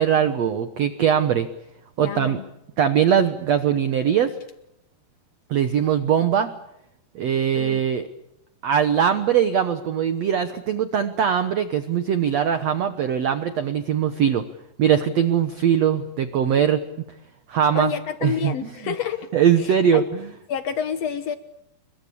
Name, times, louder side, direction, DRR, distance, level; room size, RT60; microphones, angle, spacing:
voice 1, 0.0-1.5 2.0-2.4 2.8-4.3 5.5-6.5 7.1-8.1 8.6-14.4 14.8-16.8 17.5-17.9 18.2-18.9 19.3-20.3, right 8 dB, 85° right, 10 dB, 1.4 m, -21 dB
voice 2, 2.0-2.4 7.5-7.8 17.7-19.2 19.6-20.0 20.5-21.4, left 8 dB, 85° left, 11 dB, 1.4 m, -28 dB
29.5 x 22.5 x 8.6 m, 0.78 s
omnidirectional pair, 4.8 m